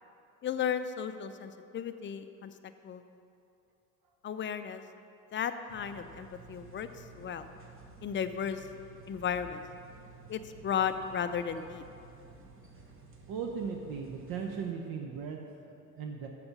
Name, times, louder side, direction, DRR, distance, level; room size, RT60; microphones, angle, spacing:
voice 1, 0.4-2.5 2.8-3.0 4.2-4.8 5.3-6.9 7.2-7.5 8.0-8.7 9.1-9.6 10.3-11.8, left 8 dB, 25° left, 10 dB, 0.5 m, -34 dB
sound 1, 5.7-14.7, right 4 dB, 25° right, 1.4 m, -53 dB
voice 2, 13.3-16.3, right 6 dB, 50° right, 2 dB, 0.9 m, -38 dB
7.0 x 7.0 x 6.6 m, 2.6 s
hypercardioid pair, 65°, 46 cm